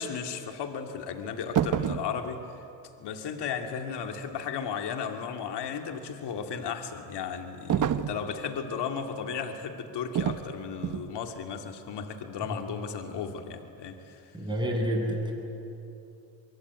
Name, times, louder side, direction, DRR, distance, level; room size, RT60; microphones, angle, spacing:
voice 1, 0.0-2.4 3.0-14.2, left 6 dB, 60° left, 5 dB, 2.5 m, -35 dB
sound 1, 1.5-2.1 7.7-8.2 10.1-10.5 10.8-11.1, right 9 dB, 40° right, 1.2 m, -27 dB
voice 2, 14.3-15.3, equal, 10° right, 1 dB, 7.9 m, -28 dB
25.5 x 21.5 x 9.7 m, 2.8 s
supercardioid pair, 80°, 46 cm